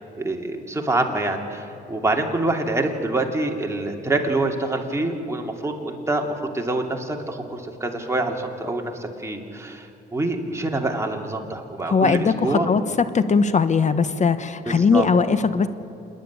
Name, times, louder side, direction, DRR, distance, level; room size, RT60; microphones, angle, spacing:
voice 1, 0.1-12.7 14.7-15.1, right 2 dB, 15° right, 1 dB, 2.6 m, -26 dB
voice 2, 11.9-12.8 13.1-15.7, left 5 dB, 35° left, 13 dB, 1.1 m, -19 dB
27.5 x 10.5 x 9.9 m, 2.8 s
cardioid pair, 90°, 20 cm